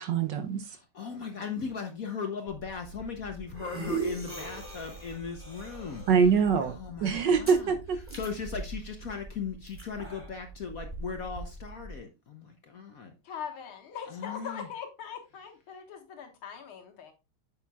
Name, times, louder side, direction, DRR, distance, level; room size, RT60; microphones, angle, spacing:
voice 1, 0.0-0.8 6.1-8.0, right 6 dB, 65° right, 1.2 m, -25 dB
voice 2, 0.6-6.0 6.6-7.7 8.1-13.1 14.1-14.7, left 6 dB, 60° left, 1.0 m, -38 dB
sound 1, 2.5-12.0, right 3 dB, 5° right, 2.5 m, -40 dB
voice 3, 13.2-17.1, left 7 dB, 75° left, 2.2 m, -41 dB
8.9 x 7.1 x 2.3 m
omnidirectional pair, 2.3 m